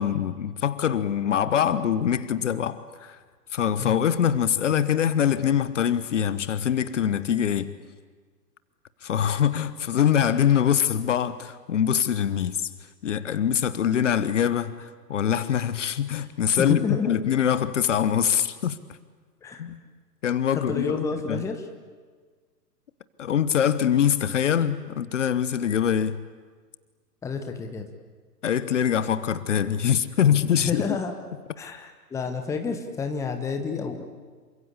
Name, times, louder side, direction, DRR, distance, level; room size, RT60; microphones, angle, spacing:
voice 1, 0.0-3.2 3.5-7.7 9.0-12.7 13.0-18.8 19.6-19.8 20.2-21.0 21.3-21.4 23.2-26.2 28.4-30.8, left 9 dB, 45° left, 1.2 m, -24 dB
voice 2, 16.6-17.2 19.4-19.7 20.5-21.6 27.2-27.9 30.6-31.1 31.6-34.0, left 5 dB, 5° left, 1.2 m, -29 dB
27.5 x 24.5 x 8.4 m
figure-of-eight pair, 120°, 50 cm